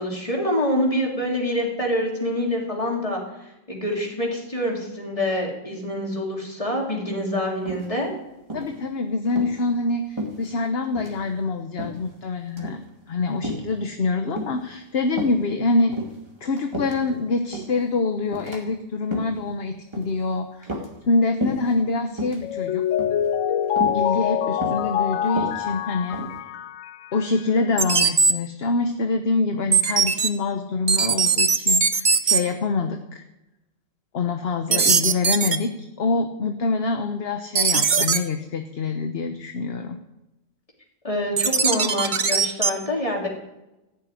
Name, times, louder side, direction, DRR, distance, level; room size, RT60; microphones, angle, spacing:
voice 1, 0.0-3.2 3.7-8.1 34.7-34.8 41.0-43.3, left 1 dB, 25° left, -1 dB, 3.5 m, -26 dB
sound 1, 7.6-8.1 8.5-8.8 9.2-9.5 10.2-10.7 10.9-11.2 11.8-12.1 12.5-12.8 13.4-13.7 14.4-14.7 15.1-15.4 15.8-17.1 17.5-17.8 18.3-18.6 19.0-19.4 19.9-20.2 20.6-21.1 21.4-21.7 22.1-22.4 23.0-23.3 23.8-24.0 24.6-24.9 25.3-26.4, right 1 dB, 20° right, 2.5 m, -32 dB
voice 2, 8.5-12.8 13.1-16.0 16.4-20.7 21.1-22.8 23.9-26.2 27.1-33.2 34.1-40.0, left 3 dB, 50° left, 6 dB, 1.2 m, -25 dB
Mallet percussion, 22.4-27.4, left 10 dB, 80° left, 1.0 m, -25 dB
sound 2, 27.8-28.3 29.7-30.3 30.9-32.4 34.7-35.6 37.6-38.2 41.4-42.7, right 5 dB, 40° right, 0.9 m, -19 dB
15.5 x 7.0 x 9.4 m, 0.95 s
omnidirectional pair, 1.4 m